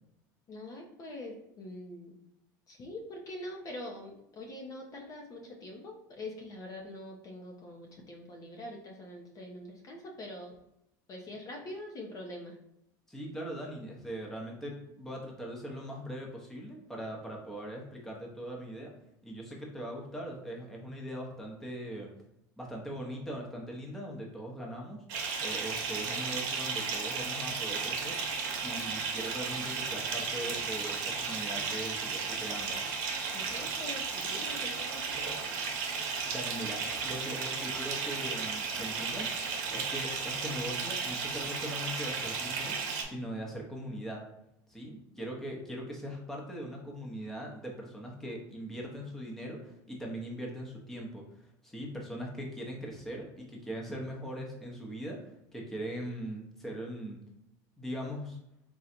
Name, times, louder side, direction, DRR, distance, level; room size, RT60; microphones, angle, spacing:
voice 1, 0.5-2.2 2.7-10.5 11.1-12.5 33.3-35.0, left 1 dB, 35° left, 0 dB, 0.7 m, -44 dB
voice 2, 13.1-18.9 19.2-22.1 22.6-25.0 25.4-28.2 28.6-32.7 36.3-39.3 39.7-42.7 43.0-44.2 44.7-57.2 57.8-58.4, equal, 5° left, -2 dB, 0.9 m, -40 dB
Bathtub (filling or washing) / Fill (with liquid), 25.1-43.0, right 5 dB, 65° right, 0.9 m, -34 dB
3.8 x 2.3 x 4.3 m, 0.81 s
supercardioid pair, 120°, 10 cm